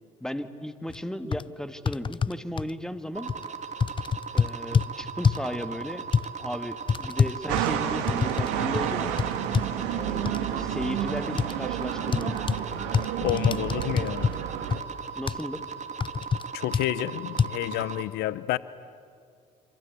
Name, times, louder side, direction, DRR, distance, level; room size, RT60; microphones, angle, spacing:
voice 1, 0.2-3.3 4.3-6.1 6.4-9.1 9.9-12.3 15.2-15.7, equal, 5° left, 1.8 m, -35 dB
sound 1, 0.9-1.0 1.3-1.4 1.9-2.7 3.3-3.4 3.8-4.9 5.2-5.5 6.1-6.3 6.9-8.5 8.7-8.9 9.2-9.7 10.2-10.4 11.4-11.5 12.1-12.6 12.9-14.4 14.7-14.8 15.3-15.4 16.0-16.4 16.7-16.9 17.4-17.5, left 6 dB, 30° left, 0.6 m, -25 dB
sound 2, 3.1-18.0, right 6 dB, 45° right, 2.6 m, -38 dB
sound 3, 7.5-14.8, right 10 dB, 80° right, 1.7 m, -30 dB
voice 2, 13.2-14.3 16.5-18.6, left 15 dB, 70° left, 0.7 m, -29 dB
27.0 x 26.0 x 8.3 m
hypercardioid pair, 60°, 17 cm